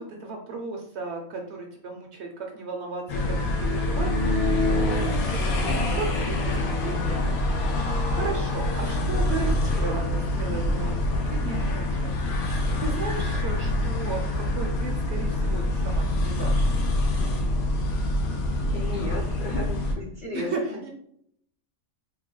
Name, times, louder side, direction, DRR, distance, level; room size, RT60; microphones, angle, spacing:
voice 1, 0.0-12.1 12.7-16.7 20.3-20.9, right 3 dB, 65° right, 2 dB, 0.8 m, -35 dB
sound 1, 3.1-19.9, left 1 dB, 90° left, 1.1 m, -25 dB
voice 2, 18.6-20.8, left 1 dB, 50° left, -3 dB, 0.6 m, -35 dB
3.4 x 2.2 x 3.7 m, 0.67 s
omnidirectional pair, 1.5 m